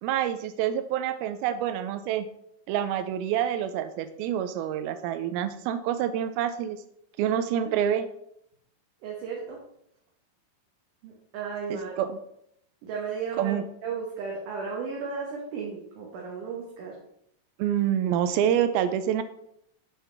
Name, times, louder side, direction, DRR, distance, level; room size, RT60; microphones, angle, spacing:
voice 1, 0.0-2.3 2.7-6.8 7.2-8.1 11.7-12.2 13.4-13.6 17.6-19.2, right 10 dB, 85° right, 11 dB, 2.4 m, -27 dB
voice 2, 7.3-7.7 9.0-9.6 11.0-12.0 12.8-16.9, right 5 dB, 65° right, -2 dB, 2.4 m, -35 dB
8.3 x 5.6 x 3.3 m, 0.73 s
omnidirectional pair, 4.3 m